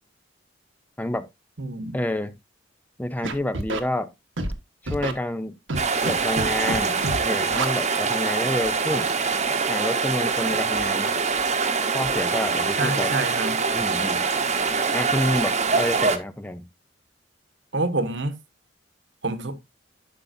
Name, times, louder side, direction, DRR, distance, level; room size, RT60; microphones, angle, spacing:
voice 1, 1.0-1.3 1.9-2.3 3.0-4.1 4.8-5.6 6.0-9.1 9.7-11.1 11.9-13.1 13.7-14.2 14.9-16.6, left 1 dB, 10° left, 0.5 m, -28 dB
voice 2, 1.6-2.0 12.8-13.6 17.7-18.4 19.2-19.6, right 2 dB, 65° right, 1.2 m, -27 dB
Scratching (performance technique), 3.2-3.8 4.4-4.5 4.9-5.1 5.7-6.1 6.4-6.8 7.0-7.2 7.5-7.7, right 2 dB, 85° right, 1.3 m, -27 dB
sound 1, 5.7-16.2, right 4 dB, 35° right, 1.0 m, -24 dB
12.0 x 5.6 x 2.7 m
head